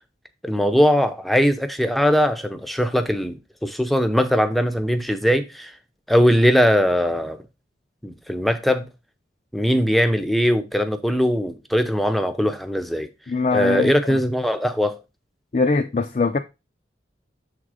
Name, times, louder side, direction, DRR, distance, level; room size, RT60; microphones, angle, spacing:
voice 1, 0.4-3.4 3.6-5.7 6.1-7.4 8.0-8.9 9.5-13.1 13.5-15.0, equal, ahead, 0.6 m, -20 dB
voice 2, 13.3-14.2 15.5-16.4, left 3 dB, 40° left, 0.4 m, -22 dB
7.0 x 3.8 x 4.8 m
head